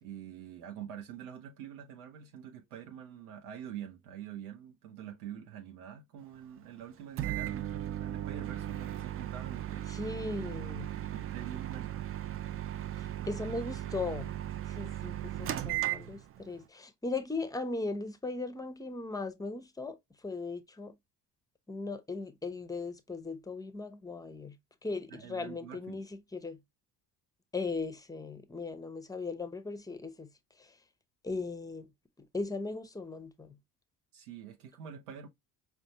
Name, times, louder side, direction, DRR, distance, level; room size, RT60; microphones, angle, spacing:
voice 1, 0.0-9.9 10.9-12.0 25.1-26.0 34.1-35.3, right 9 dB, 85° right, 0.7 m, -46 dB
Microwave oven, 7.2-16.6, right 12 dB, 30° right, 0.4 m, -37 dB
voice 2, 9.9-10.9 13.0-14.3 14.7-20.0 20.2-21.0 21.7-24.6 24.8-26.1 26.3-26.6 27.5-30.3 30.6-30.8 31.2-31.9 32.3-33.6, left 3 dB, 10° left, 0.7 m, -38 dB
5.1 x 2.2 x 2.7 m
hypercardioid pair, 60°, 44 cm